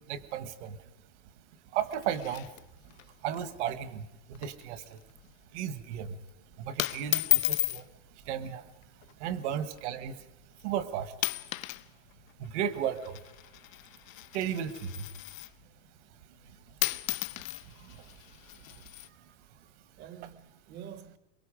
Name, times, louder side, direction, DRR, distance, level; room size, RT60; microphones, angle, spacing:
voice 1, 0.1-0.8 1.7-2.4 3.2-5.0 5.5-6.1 6.6-7.8 8.3-8.6 9.2-10.1 10.6-11.1 12.4-13.2 14.3-15.0, right 9 dB, 60° right, 1.4 m, -34 dB
sound 1, 1.8-3.0 3.3-3.4 3.7-4.0 4.3-4.7 5.0-5.3 6.0-6.3 6.8-7.8 8.8-9.1 9.8-9.9 10.6-10.8 11.1-11.9 12.1-15.6 16.5-16.6 16.8-19.1, left 17 dB, 85° left, 0.8 m, -34 dB
voice 2, 20.0-21.2, right 9 dB, 25° right, 0.8 m, -48 dB
23.0 x 22.5 x 5.1 m
supercardioid pair, 175°, 39 cm